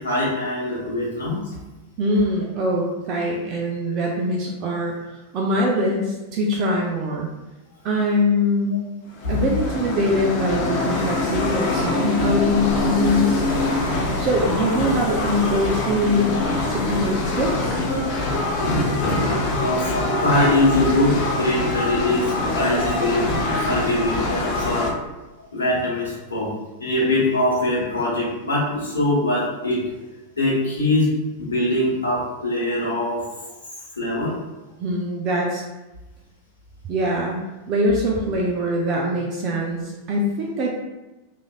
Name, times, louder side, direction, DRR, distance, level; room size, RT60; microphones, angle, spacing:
voice 1, 0.0-1.5 9.2-9.4 11.0-11.2 11.6-11.9 19.6-23.3 23.7-24.9 25.5-26.5 26.8-29.8 30.4-33.4 34.0-34.4, left 1 dB, 70° left, -6 dB, 1.0 m, -22 dB
voice 2, 2.0-7.3 7.8-8.8 9.3-13.5 14.2-17.8 34.8-35.6 36.9-40.8, left 1 dB, 35° right, -2 dB, 0.4 m, -23 dB
sound 1, 9.1-24.9, left 2 dB, 40° left, 0.4 m, -24 dB
3.1 x 2.5 x 2.3 m, 1.1 s
figure-of-eight pair, 90°, 0 cm